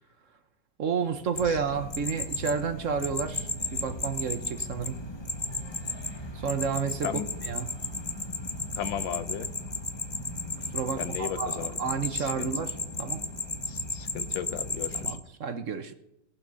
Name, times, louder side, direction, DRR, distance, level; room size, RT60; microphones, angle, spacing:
voice 1, 0.8-5.0 6.3-7.7 10.7-13.2 14.9-15.9, right 6 dB, 50° right, 1.1 m, -31 dB
sound 1, 1.4-15.2, left 2 dB, 20° left, 0.7 m, -34 dB
voice 2, 8.8-9.5 11.0-11.7 12.1-12.5 13.7-15.2, left 9 dB, 85° left, 1.6 m, -35 dB
18.5 x 6.2 x 6.8 m
omnidirectional pair, 2.0 m